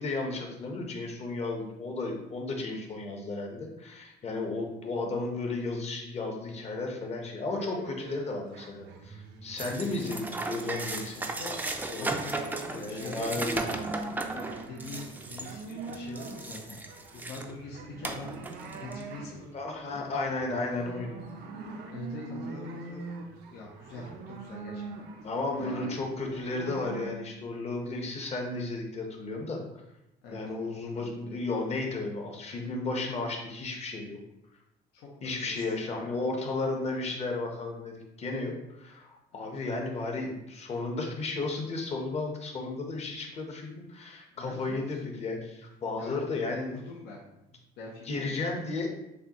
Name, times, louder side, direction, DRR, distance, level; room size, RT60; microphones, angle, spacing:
voice 1, 0.0-11.3 11.9-12.1 12.7-13.7 19.5-21.2 25.2-29.6 30.3-34.2 35.2-46.8 48.0-48.9, left 3 dB, 40° left, 1 dB, 1.0 m, -34 dB
sound 1, 7.6-10.7 11.0-27.1, right 4 dB, 80° right, 0.6 m, -43 dB
sound 2, 9.6-17.5 18.0-19.0, right 2 dB, 10° right, 0.4 m, -36 dB
voice 2, 11.1-11.6 12.0-13.4 14.3-16.8 17.1-18.4 18.8-20.0 21.9-23.0 23.5-24.9 25.2-25.9 30.2-30.8 34.9-36.1 39.3-39.6 44.3-45.0 46.0-46.3 46.6-47.2 47.8-48.5, left 3 dB, 80° left, -2 dB, 0.8 m, -44 dB
6.5 x 2.3 x 2.9 m, 0.88 s
cardioid pair, 110°, 17 cm